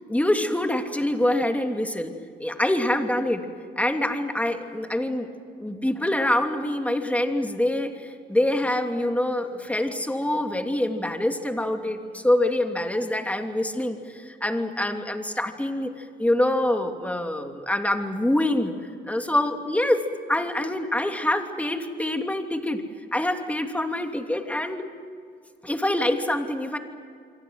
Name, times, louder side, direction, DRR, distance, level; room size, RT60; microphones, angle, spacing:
voice 1, 0.1-2.1 2.4-3.5 3.8-5.3 5.6-18.7 19.1-20.0 20.3-22.8 23.1-24.8 25.6-26.8, left 1 dB, 5° left, 4 dB, 2.9 m, -25 dB
28.0 x 24.5 x 7.8 m, 2.2 s
cardioid pair, 90°, 20 cm